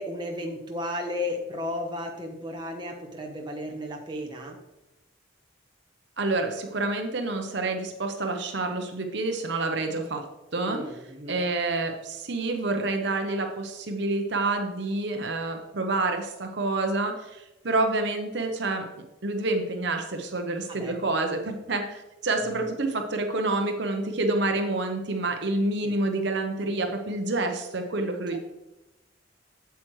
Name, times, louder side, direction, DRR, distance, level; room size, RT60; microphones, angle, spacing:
voice 1, 0.0-4.6 10.7-11.4 20.7-21.0 22.5-22.7 25.8-25.9 28.3-28.4, left 1 dB, 20° right, 1 dB, 0.9 m, -34 dB
voice 2, 6.2-10.2 10.5-10.8 11.3-18.8 19.2-28.4, right 2 dB, 60° right, 4 dB, 0.9 m, -28 dB
8.1 x 7.8 x 3.2 m, 0.96 s
head